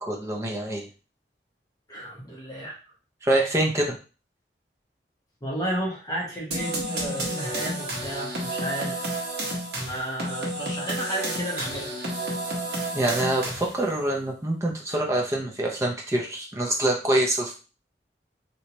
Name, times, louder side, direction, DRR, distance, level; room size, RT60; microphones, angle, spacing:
voice 1, 0.0-0.9 3.2-3.9 12.9-17.5, right 1 dB, 15° right, 0 dB, 0.7 m, -25 dB
voice 2, 1.9-2.8 5.4-9.3 9.8-11.9, right 1 dB, 20° left, -4 dB, 1.0 m, -33 dB
sound 1, 6.5-13.9, right 1 dB, 65° right, 1.2 m, -31 dB
3.2 x 2.9 x 2.9 m, 0.35 s
head